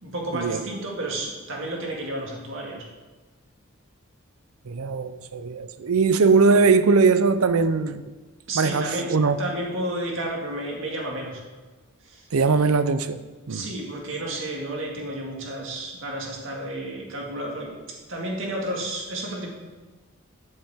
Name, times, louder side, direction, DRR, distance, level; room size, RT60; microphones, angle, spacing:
voice 1, 0.0-2.8 8.5-11.4 12.0-12.2 13.5-17.7 18.1-19.5, right 1 dB, 65° right, 2.0 m, -31 dB
voice 2, 4.7-8.0 8.5-9.4 12.3-13.2 13.5-13.7, right 4 dB, 90° right, 0.6 m, -20 dB
12.5 x 6.5 x 3.6 m
head